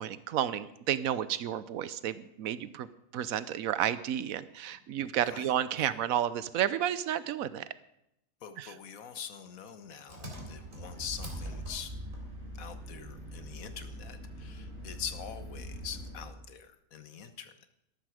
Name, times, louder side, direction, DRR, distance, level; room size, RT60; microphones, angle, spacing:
voice 1, 0.0-2.9 3.1-7.6 8.6-8.7, right 10 dB, 85° right, 15 dB, 1.1 m, -31 dB
voice 2, 8.4-11.9 12.6-17.7, left 8 dB, 90° left, 10 dB, 1.5 m, -44 dB
Engine, 10.1-16.4, equal, 40° right, 3.6 m, -42 dB
13.0 x 12.5 x 4.9 m, 0.81 s
omnidirectional pair, 1.4 m